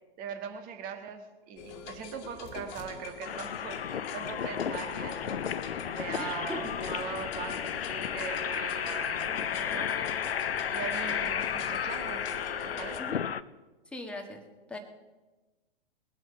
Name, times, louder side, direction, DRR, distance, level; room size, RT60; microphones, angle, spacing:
voice 1, 0.2-5.4 5.9-10.1 10.7-12.3 12.6-13.1, right 7 dB, 30° right, 6 dB, 1.7 m, -41 dB
sound 1, 1.6-13.0, left 6 dB, 30° left, 2.0 m, -43 dB
sound 2, 3.2-13.4, left 8 dB, 75° left, 0.7 m, -33 dB
voice 2, 6.2-6.7 13.0-13.2 13.9-14.4 14.7-14.8, left 1 dB, 5° left, 2 dB, 1.5 m, -39 dB
21.0 x 7.9 x 5.8 m, 1.2 s
figure-of-eight pair, 120°, 30 cm